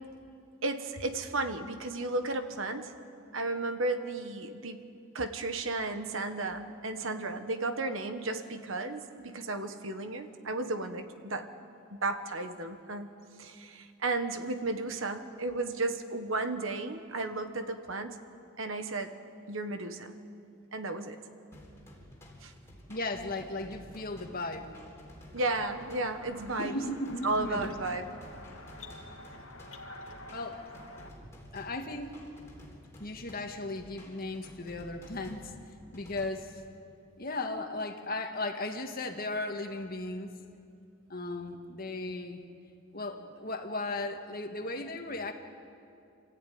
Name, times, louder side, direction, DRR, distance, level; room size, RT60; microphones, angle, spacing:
voice 1, 0.6-2.9 3.3-4.8 5.1-11.5 11.9-13.1 13.4-18.2 18.6-19.1 19.5-20.1 20.7-21.2 22.4-22.5 25.3-26.8 27.2-28.1, right 2 dB, 70° right, 8 dB, 1.4 m, -34 dB
sound 1, 21.5-36.3, equal, 15° left, 3.5 m, -52 dB
voice 2, 22.9-24.7 26.6-27.7 30.3-30.6 31.5-32.1 33.0-35.5 35.9-36.5 37.2-40.4 41.1-42.4 42.9-45.3, left 2 dB, 45° left, 4 dB, 1.7 m, -36 dB
sound 2, 25.4-31.1, left 2 dB, 80° left, 2.1 m, -48 dB
27.5 x 13.5 x 9.4 m, 2.5 s
head